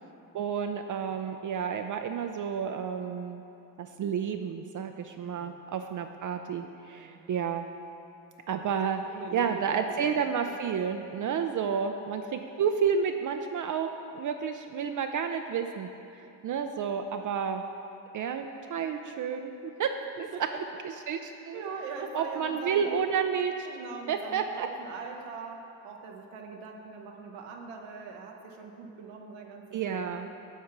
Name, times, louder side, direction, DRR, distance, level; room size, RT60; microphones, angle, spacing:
voice 1, 0.3-3.4 3.8-7.7 8.5-9.0 9.3-15.9 16.2-17.6 18.1-20.3 21.1-21.7 22.1-23.7 24.1-24.7 29.7-30.3, right 7 dB, 45° right, 6 dB, 0.5 m, -31 dB
voice 2, 5.2-5.5 6.9-7.2 8.5-8.7 9.1-10.0 10.5-10.6 11.7-11.9 20.3-20.4 21.5-22.9 23.6-30.3, right 5 dB, 85° right, 2 dB, 0.9 m, -42 dB
9.9 x 3.7 x 5.9 m, 2.8 s
hypercardioid pair, 50°, 43 cm